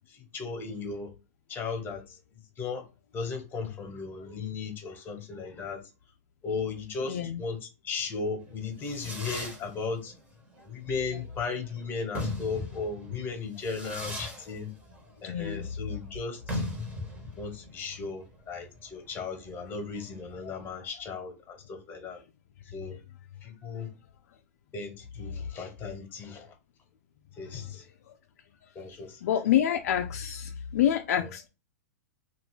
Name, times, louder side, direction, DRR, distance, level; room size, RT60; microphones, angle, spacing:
voice 1, 0.1-1.1 1.5-2.8 3.1-5.9 6.4-10.1 10.6-14.7 15.2-16.6 17.3-22.2 22.7-23.0 23.4-23.9 24.7-26.5 27.4-27.8 28.7-29.2 31.2-31.3, left 4 dB, 25° left, 1.3 m, -36 dB
voice 2, 7.1-7.4 15.2-15.6 29.2-31.5, left 10 dB, 65° left, 0.5 m, -27 dB
Fireworks, 8.5-20.7, left 1 dB, 15° right, 1.2 m, -39 dB
2.7 x 2.6 x 3.6 m
hypercardioid pair, 120°, 9 cm